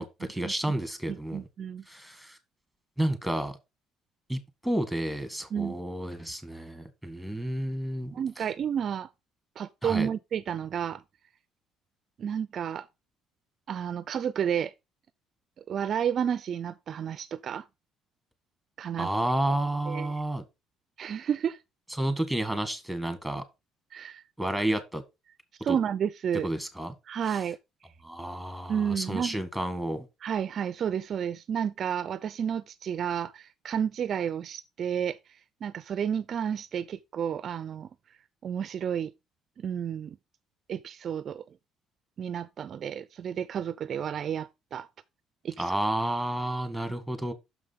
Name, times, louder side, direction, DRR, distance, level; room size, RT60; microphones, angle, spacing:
voice 1, 0.0-1.5 1.9-2.4 3.0-3.6 4.3-8.5 9.8-10.1 19.0-20.4 22.0-23.4 24.4-25.0 25.7-25.8 26.4-26.9 27.2-27.4 28.0-30.1 45.6-47.3, right 1 dB, ahead, 1.5 m, -31 dB
voice 2, 1.1-1.8 5.5-5.8 8.1-9.1 9.6-11.0 12.2-12.9 13.7-14.7 15.7-17.7 18.8-19.1 19.9-20.1 21.0-21.6 23.9-24.2 25.6-26.5 27.1-27.6 28.7-29.4 30.2-35.2 35.6-37.9 38.4-39.1 39.6-40.2 40.7-41.4 42.2-44.9 45.4-45.7, right 8 dB, 50° right, 0.4 m, -31 dB
6.3 x 4.9 x 5.5 m
cardioid pair, 115°, 0 cm